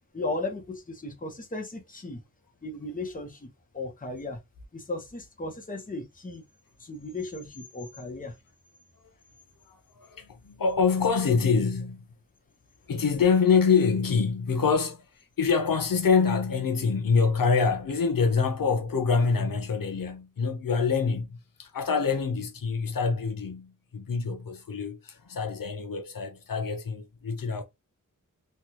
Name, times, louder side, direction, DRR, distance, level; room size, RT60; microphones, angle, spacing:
voice 1, 0.1-2.2 2.6-3.5 3.7-4.4 4.7-6.4 6.8-8.3, left 2 dB, 25° left, 0.9 m, -35 dB
voice 2, 9.7-12.0 12.9-15.0 15.4-27.6, left 5 dB, 85° left, 0.8 m, -25 dB
3.3 x 2.3 x 2.8 m
wide cardioid pair, 90°, 33 cm